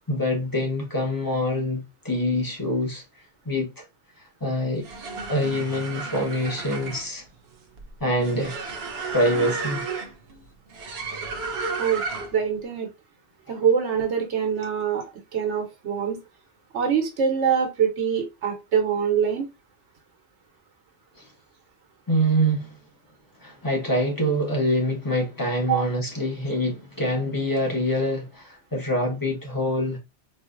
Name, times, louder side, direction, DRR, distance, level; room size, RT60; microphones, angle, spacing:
voice 1, 0.1-3.0 3.4-3.8 4.2-4.9 5.3-7.2 8.0-8.6 9.1-9.9 21.2-21.3 22.1-22.8 23.4-30.0, equal, 20° left, 0.9 m, -25 dB
sound 1, 4.7-12.5, right 4 dB, 65° right, 0.8 m, -33 dB
voice 2, 12.3-12.9 13.5-15.0 15.3-16.2 16.7-19.5 25.7-25.8, right 7 dB, 85° right, 1.1 m, -24 dB
3.9 x 2.4 x 2.4 m
omnidirectional pair, 1.1 m